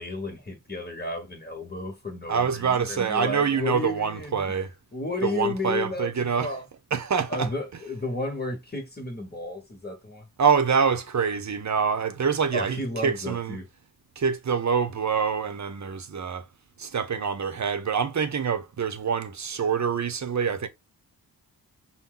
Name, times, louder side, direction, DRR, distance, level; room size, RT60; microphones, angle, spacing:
voice 1, 0.0-4.6 4.9-6.6 7.3-10.3 12.5-13.7, left 3 dB, 25° left, 1.2 m, -33 dB
voice 2, 2.3-4.7 5.2-6.5 6.9-7.5 10.4-13.6 14.2-16.5 16.8-20.7, right 6 dB, 50° right, 0.7 m, -25 dB
5.7 x 2.1 x 3.8 m
wide cardioid pair, 105°, 37 cm